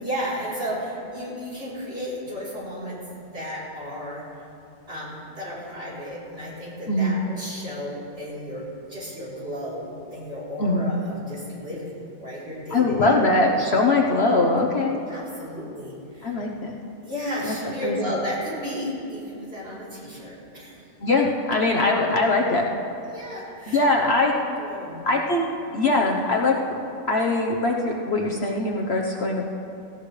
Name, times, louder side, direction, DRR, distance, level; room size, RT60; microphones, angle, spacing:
voice 1, 0.0-4.2 4.9-11.9 12.2-13.2 15.1-16.4 17.0-20.8 23.0-23.9 24.2-25.0, equal, 40° right, -7 dB, 4.0 m, -33 dB
voice 2, 6.9-7.2 10.6-10.9 12.7-15.0 16.2-16.7 17.4-17.5 17.8-18.0 21.0-22.7 23.7-24.3 25.0-25.5 25.7-26.5 27.1-29.4, left 2 dB, 50° left, -1 dB, 1.1 m, -21 dB
17.5 x 16.0 x 3.3 m, 2.7 s
omnidirectional pair, 1.5 m